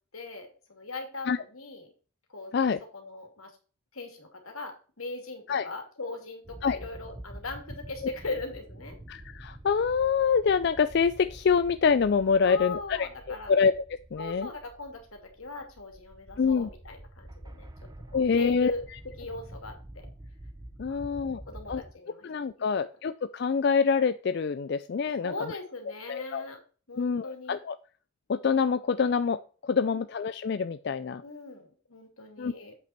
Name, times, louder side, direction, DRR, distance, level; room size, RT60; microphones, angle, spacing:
voice 1, 0.1-1.9 2.3-2.5 2.9-3.5 3.9-9.0 12.5-13.5 14.2-17.7 18.1-20.1 20.9-22.3 22.6-22.8 25.2-26.6 26.9-27.6 31.2-32.8, left 3 dB, 85° left, 3 dB, 2.6 m, -40 dB
sound 1, 6.4-21.9, right 1 dB, 20° right, 0.6 m, -47 dB
voice 2, 9.1-13.7 14.1-14.5 16.4-16.7 18.1-18.7 20.8-21.4 21.7-21.8 22.2-25.3 26.1-26.4 27.0-27.8 28.3-31.2 32.4-32.5, left 5 dB, 50° left, 13 dB, 0.3 m, -26 dB
8.1 x 5.9 x 4.3 m, 0.39 s
head